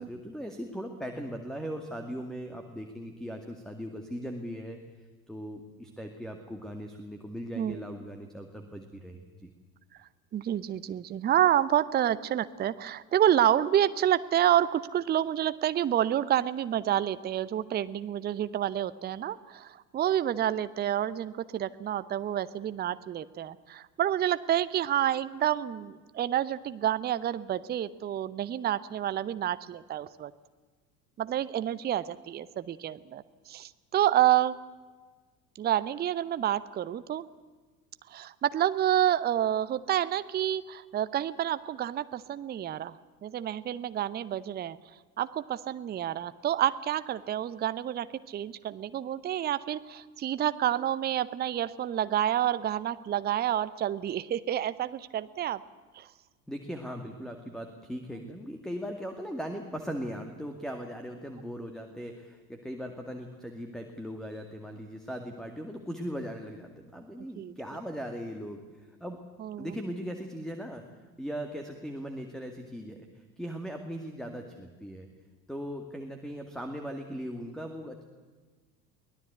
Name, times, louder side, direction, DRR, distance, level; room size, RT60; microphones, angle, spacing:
voice 1, 0.0-4.8 5.3-9.5 56.5-69.2 69.6-70.8 71.2-75.1 75.5-78.0, equal, ahead, 5 dB, 2.1 m, -39 dB
voice 2, 10.3-30.3 31.2-34.6 35.6-37.2 38.1-43.0 43.2-44.8 45.2-55.6 55.9-56.1 67.3-67.5 69.4-69.8, right 11 dB, 20° right, 15 dB, 0.7 m, -28 dB
23.5 x 18.0 x 8.2 m, 1.4 s
figure-of-eight pair, 70°, 49 cm